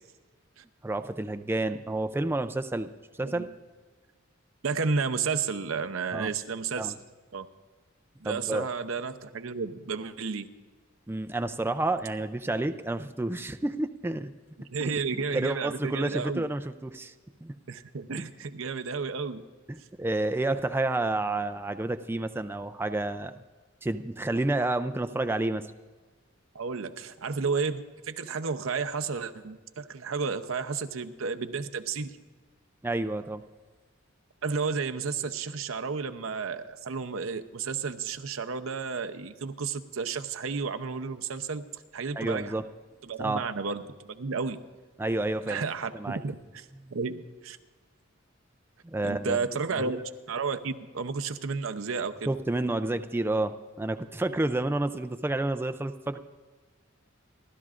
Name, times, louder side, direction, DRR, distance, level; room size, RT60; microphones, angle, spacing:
voice 1, 0.8-2.9 3.2-3.5 6.1-6.3 6.8-6.9 8.2-8.7 11.1-14.3 14.8-17.1 17.4-17.5 18.2-18.3 19.7-23.3 23.8-25.7 32.8-33.4 42.2-42.7 43.2-43.4 45.0-45.6 45.9-46.2 48.8-49.4 49.8-50.0 52.3-56.2, right 2 dB, 10° right, 9 dB, 0.4 m, -30 dB
voice 2, 4.6-6.9 7.3-7.5 8.2-10.5 14.6-16.4 17.7-19.4 26.5-32.1 34.4-41.6 41.9-42.5 43.0-44.6 45.4-46.6 46.9-47.6 49.0-50.0 50.3-52.3, right 5 dB, 85° right, 8 dB, 0.7 m, -32 dB
29.0 x 12.0 x 2.5 m, 1.4 s
head